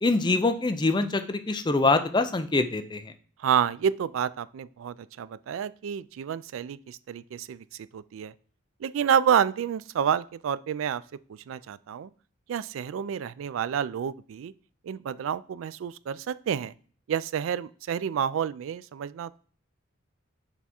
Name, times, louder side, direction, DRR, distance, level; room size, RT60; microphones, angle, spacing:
voice 1, 0.0-3.0, left 3 dB, 20° left, 8 dB, 0.5 m, -24 dB
voice 2, 3.4-7.6 7.9-8.3 8.8-11.0 11.5-12.1 12.5-14.5 14.8-16.7 17.1-19.4, right 8 dB, 80° right, 17 dB, 0.3 m, -29 dB
7.0 x 3.5 x 4.2 m, 0.43 s
head